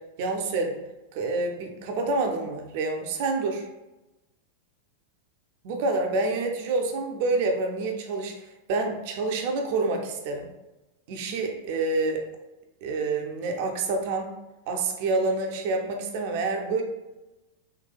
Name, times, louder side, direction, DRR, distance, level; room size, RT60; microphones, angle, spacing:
voice 1, 0.2-0.8 1.1-3.7 5.6-10.5 11.1-12.3 12.8-14.3 14.7-16.8, right 3 dB, 50° right, 3 dB, 0.4 m, -27 dB
3.8 x 2.3 x 2.2 m, 1.0 s
figure-of-eight pair, 90°, 0 cm